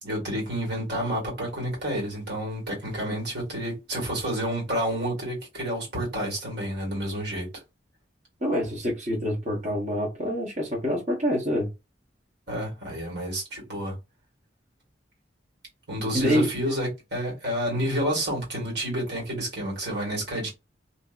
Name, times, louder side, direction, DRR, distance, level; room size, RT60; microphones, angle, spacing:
voice 1, 0.0-7.5 12.5-14.0 15.9-20.5, equal, 65° right, 1.8 m, -29 dB
voice 2, 8.4-11.7 16.1-16.5, equal, 40° right, 1.0 m, -26 dB
2.7 x 2.7 x 2.4 m
head